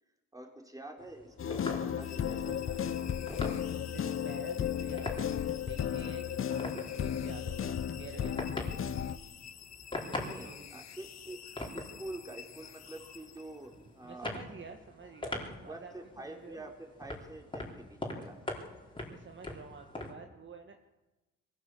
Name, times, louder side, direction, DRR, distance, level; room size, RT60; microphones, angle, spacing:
voice 1, 0.3-2.8 10.2-11.5 11.7-14.4 15.3-18.4, right 2 dB, 10° right, 1 dB, 4.3 m, -47 dB
sound 1, 1.0-20.1, left 2 dB, 15° left, 4.2 m, -44 dB
sound 2, 1.4-9.2, left 9 dB, 45° left, 0.9 m, -34 dB
sound 3, 2.0-13.9, left 9 dB, 60° left, 1.4 m, -51 dB
voice 2, 3.9-8.5 10.1-10.7 14.0-16.7 19.1-20.8, right 5 dB, 40° right, 4 dB, 1.7 m, -49 dB
22.0 x 16.0 x 7.9 m, 1.1 s
cardioid pair, 90°, 30 cm